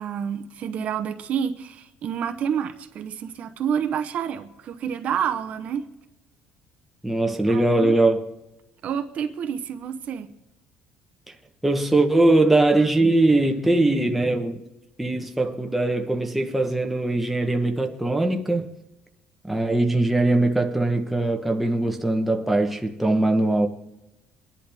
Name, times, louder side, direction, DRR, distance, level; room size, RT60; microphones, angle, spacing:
voice 1, 0.0-5.9 7.5-8.0 8.8-10.3, right 8 dB, 45° right, 0.8 m, -29 dB
voice 2, 7.0-8.3 11.6-14.6 15.0-18.7 19.4-23.7, right 2 dB, 5° right, 1.0 m, -21 dB
24.0 x 10.5 x 3.5 m
cardioid pair, 160°, 3 cm